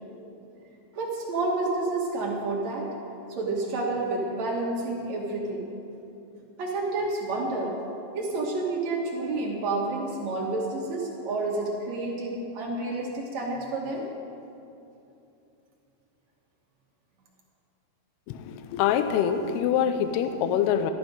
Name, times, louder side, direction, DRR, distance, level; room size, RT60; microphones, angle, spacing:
voice 1, 1.0-2.9 3.4-5.7 6.6-7.8 8.1-14.0, right 2 dB, 65° right, -2 dB, 1.8 m, -29 dB
voice 2, 18.3-20.9, left 9 dB, 80° left, 8 dB, 2.6 m, -25 dB
14.0 x 11.0 x 5.1 m, 2.8 s
omnidirectional pair, 4.9 m